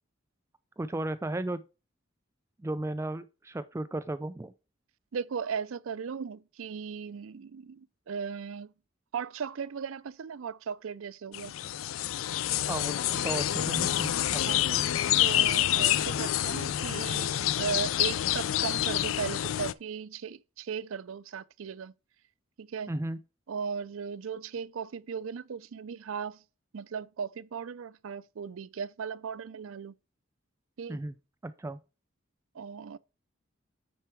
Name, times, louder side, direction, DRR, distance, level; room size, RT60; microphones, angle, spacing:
voice 1, 0.8-1.6 2.6-4.5 12.7-14.8 22.9-23.2 30.9-31.2 31.4-31.8, right 1 dB, 15° right, 0.3 m, -35 dB
voice 2, 5.1-8.7 9.1-11.5 14.5-14.6 15.2-21.9 22.6-22.9 23.5-26.4 26.7-29.9 30.8-31.0 32.5-33.0, right 6 dB, 90° right, 0.5 m, -37 dB
sound 1, 11.3-19.7, left 12 dB, 80° left, 0.4 m, -28 dB
9.2 x 4.6 x 4.5 m
head